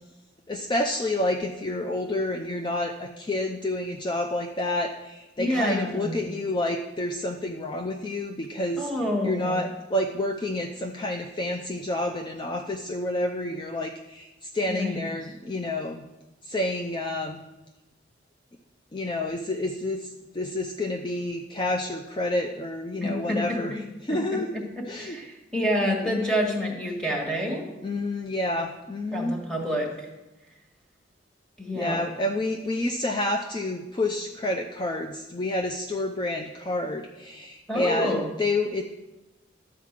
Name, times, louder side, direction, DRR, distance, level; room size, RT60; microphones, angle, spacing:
voice 1, 0.5-8.9 9.2-16.0 16.4-17.4 18.9-24.5 24.9-25.2 27.8-29.3 31.7-38.8, left 1 dB, 25° left, 4 dB, 0.5 m, -29 dB
voice 2, 5.4-6.1 8.8-9.6 14.7-15.0 23.0-23.4 24.1-24.6 25.0-27.7 29.1-30.1 31.6-32.0 37.7-38.3, equal, 5° left, 0 dB, 1.8 m, -28 dB
12.0 x 4.7 x 7.4 m, 1.1 s
head